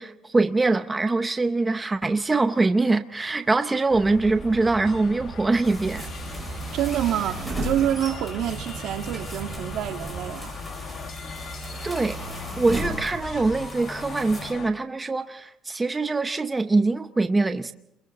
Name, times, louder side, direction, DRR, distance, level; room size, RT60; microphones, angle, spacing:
voice 1, 0.0-6.1 11.8-12.2 12.6-17.7, right 3 dB, 15° right, 0.7 m, -23 dB
sound 1, 3.2-14.7, left 6 dB, 45° left, 1.7 m, -41 dB
sound 2, 3.9-10.3, right 6 dB, 30° right, 1.1 m, -40 dB
sound 3, 5.6-14.5, equal, 5° left, 5.8 m, -36 dB
voice 2, 6.7-10.6, right 11 dB, 70° right, 2.0 m, -27 dB
30.0 x 22.5 x 4.0 m
cardioid pair, 160°, 0 cm